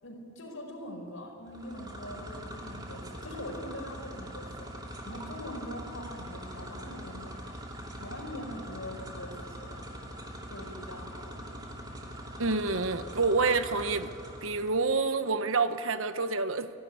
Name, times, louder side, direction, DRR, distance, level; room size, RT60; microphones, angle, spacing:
voice 1, 0.0-7.4 7.9-9.8 10.5-11.6, left 1 dB, 75° left, 4.9 m, -43 dB
sound 1, 1.5-14.9, equal, 20° right, 2.5 m, -43 dB
voice 2, 12.4-14.1 14.4-16.7, right 4 dB, 70° right, 1.1 m, -28 dB
28.5 x 12.5 x 9.7 m
head